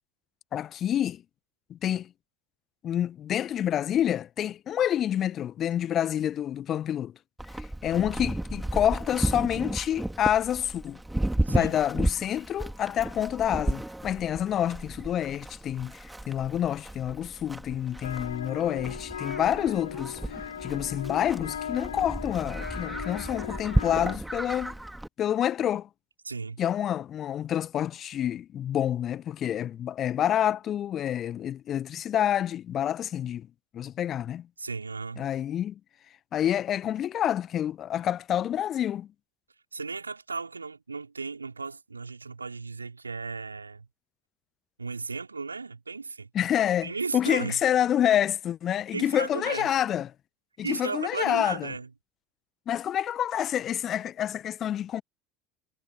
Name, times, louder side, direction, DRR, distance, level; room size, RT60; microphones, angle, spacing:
voice 1, 0.5-1.2 1.7-2.1 2.8-7.1 7.5-11.0 11.5-20.3 20.6-24.8 25.2-25.9 26.6-33.5 33.7-34.5 35.2-35.8 36.3-39.1 46.3-50.1 50.6-51.7 52.7-55.0, left 10 dB, 40° left, 1.2 m, -28 dB
Livestock farm animals working animals, 7.4-25.1, right 1 dB, 5° right, 3.1 m, -33 dB
sound 1, 18.0-24.2, left 9 dB, 75° left, 2.9 m, -38 dB
voice 2, 26.2-26.6 34.6-35.3 39.7-43.9 44.8-46.3 46.8-47.6 48.9-49.7 50.6-51.9, right 4 dB, 80° right, 4.8 m, -35 dB
figure-of-eight pair, 65°, 0 cm